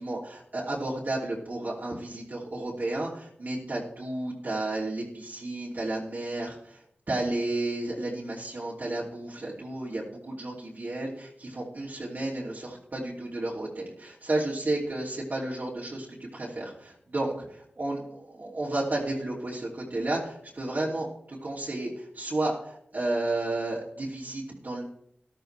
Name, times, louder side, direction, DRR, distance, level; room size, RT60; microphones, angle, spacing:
voice 1, 0.0-6.8 7.1-16.1 16.3-24.8, right 2 dB, 55° right, -5 dB, 2.9 m, -32 dB
13.0 x 12.0 x 3.4 m, 0.70 s
cardioid pair, 45°, 4 cm